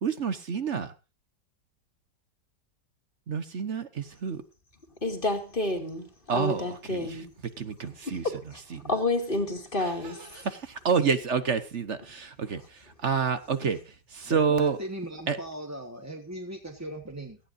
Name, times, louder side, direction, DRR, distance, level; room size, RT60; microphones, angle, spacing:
voice 1, 0.0-0.9 3.3-4.4 6.3-7.2 7.6-8.3 8.7-8.9 9.8-14.8 15.3-15.4, right 6 dB, 45° right, 1.2 m, -29 dB
voice 2, 5.0-6.1 6.3-7.3 8.1-8.6 8.9-10.5, left 2 dB, 30° left, 2.4 m, -30 dB
voice 3, 14.2-17.4, right 1 dB, 10° right, 1.1 m, -38 dB
17.5 x 14.5 x 2.6 m
omnidirectional pair, 2.0 m